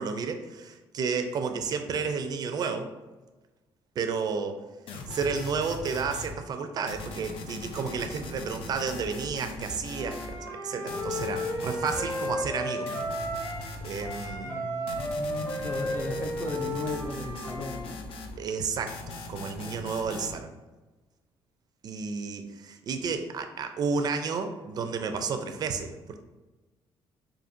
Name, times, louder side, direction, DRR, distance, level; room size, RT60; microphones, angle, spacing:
voice 1, 0.0-2.9 4.0-4.6 5.1-12.9 13.8-14.6 18.4-19.0 19.3-20.5 21.8-26.2, right 5 dB, 45° right, 7 dB, 0.4 m, -31 dB
sound 1, 4.9-6.3 6.9-10.4 10.9-12.4 12.9-14.3 14.9-18.4 18.9-20.4, left 2 dB, 75° left, 0.6 m, -40 dB
Wind instrument woodwind instrument, 9.9-13.7 14.0-17.9, equal, 40° left, 1.3 m, -34 dB
voice 2, 14.4-18.0, left 2 dB, 20° left, 4 dB, 0.4 m, -36 dB
5.0 x 2.6 x 2.6 m, 1.2 s
cardioid pair, 150°, 9 cm